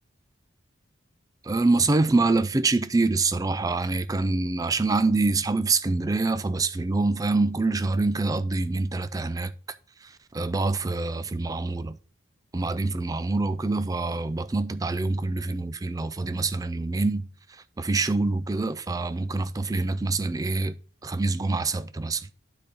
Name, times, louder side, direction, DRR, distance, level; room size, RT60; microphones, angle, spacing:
voice 1, 1.4-9.5 10.0-12.0 12.5-20.8 21.0-22.3, right 3 dB, 15° right, 0.3 m, -25 dB
9.2 x 4.0 x 5.2 m
head